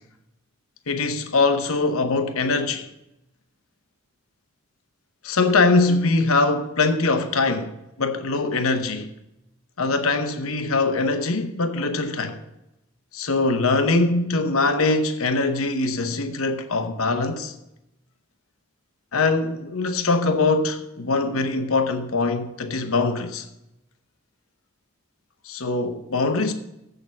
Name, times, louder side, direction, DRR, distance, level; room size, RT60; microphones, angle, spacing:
voice 1, 0.9-2.9 5.2-9.1 9.8-12.4 13.1-17.5 19.1-23.5 25.5-26.5, left 3 dB, 85° left, 0.9 m, -22 dB
7.8 x 6.7 x 7.3 m
head